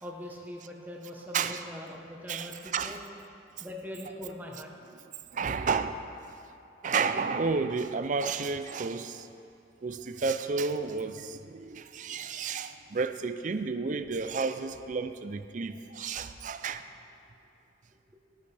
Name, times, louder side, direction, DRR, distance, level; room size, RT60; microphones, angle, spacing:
voice 1, 0.0-3.0 3.6-4.7, left 1 dB, 10° right, 1.0 m, -42 dB
voice 2, 2.3-3.0 5.3-6.0 6.8-9.3 9.8-16.8, right 4 dB, 40° right, 0.4 m, -31 dB
15.0 x 9.6 x 3.4 m
head